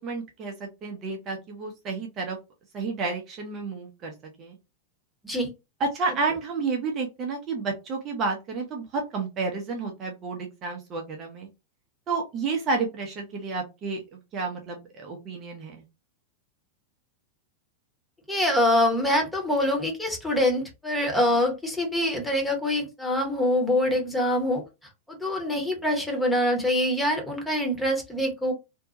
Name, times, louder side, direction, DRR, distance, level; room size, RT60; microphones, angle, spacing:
voice 1, 0.0-2.4 2.7-4.6 5.8-11.5 12.1-15.8, right 4 dB, 30° right, 1 dB, 0.7 m, -31 dB
voice 2, 18.3-24.6 25.1-28.5, left 1 dB, 5° left, 1 dB, 1.0 m, -25 dB
2.6 x 2.2 x 2.8 m, 0.25 s
figure-of-eight pair, 90°, 0 cm